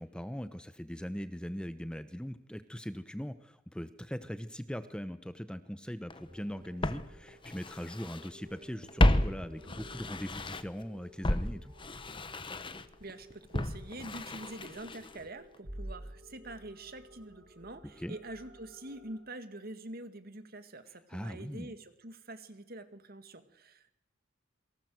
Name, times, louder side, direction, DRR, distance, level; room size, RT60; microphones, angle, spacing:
voice 1, 0.0-11.7 18.0-18.2 21.1-21.7, equal, 5° left, 11 dB, 1.0 m, -40 dB
Walk footsteps, 6.1-6.2 6.8-8.3 8.6-10.8 11.2-15.3 15.5-15.6, left 1 dB, 25° left, 1.2 m, -32 dB
sound 1, 6.2-19.2, equal, 65° right, 6.9 m, -53 dB
voice 2, 13.0-24.0, right 2 dB, 50° right, 10 dB, 2.2 m, -46 dB
28.0 x 23.5 x 7.9 m, 0.83 s
head